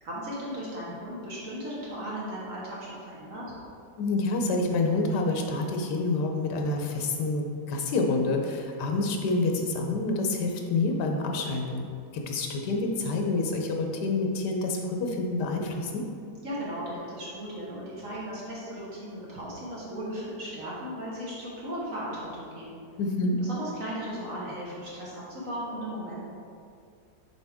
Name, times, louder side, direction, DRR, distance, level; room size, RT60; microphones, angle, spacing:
voice 1, 0.0-3.5 16.4-22.8 23.4-26.2, equal, 50° right, -6 dB, 1.5 m, -36 dB
voice 2, 4.0-11.9 12.1-16.0 23.0-23.4, left 3 dB, 75° left, 2 dB, 1.4 m, -28 dB
7.0 x 4.7 x 3.5 m, 2.4 s
omnidirectional pair, 1.8 m